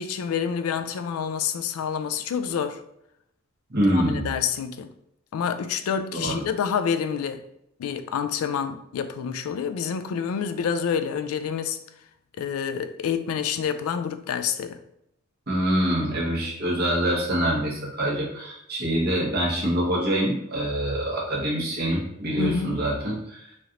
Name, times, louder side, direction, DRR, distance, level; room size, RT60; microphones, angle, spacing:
voice 1, 0.0-2.8 3.9-4.9 5.3-7.4 7.8-11.8 12.4-14.8 22.4-22.8, left 7 dB, 80° left, 0.3 m, -28 dB
voice 2, 3.7-4.3 6.1-6.3 15.5-23.4, right 1 dB, 45° right, 1.1 m, -25 dB
3.1 x 2.5 x 2.8 m
head